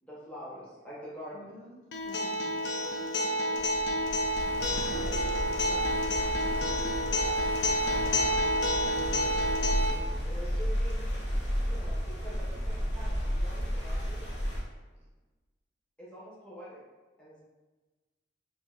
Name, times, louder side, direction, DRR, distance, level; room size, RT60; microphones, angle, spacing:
voice 1, 0.0-1.5 2.8-3.0 7.2-7.3 7.8-8.0 8.8-11.0 11.6-14.2 16.0-16.8 17.2-17.4, equal, 5° left, -8 dB, 0.8 m, -46 dB
voice 2, 1.3-2.9 4.6-7.1, left 1 dB, 35° left, -8 dB, 1.3 m, -47 dB
Acoustic guitar, 1.9-9.9, equal, 70° left, 0.4 m, -29 dB
voice 3, 2.3-2.8 3.1-4.1, equal, 30° right, -2 dB, 0.3 m, -56 dB
sound 1, 3.6-14.6, equal, 90° left, 0.8 m, -33 dB
5.0 x 2.1 x 2.3 m, 1.2 s
head